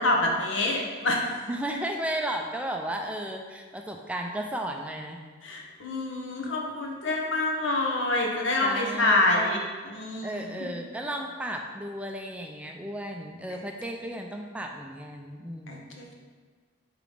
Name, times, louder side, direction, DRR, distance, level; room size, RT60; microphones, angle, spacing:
voice 1, 0.0-1.3 5.4-9.6 9.9-10.7 15.7-16.1, left 2 dB, 85° left, 0 dB, 1.0 m, -27 dB
voice 2, 1.5-5.2 8.6-9.6 10.2-16.0, right 1 dB, 5° right, 2 dB, 0.3 m, -34 dB
5.0 x 3.9 x 5.0 m, 1.5 s
head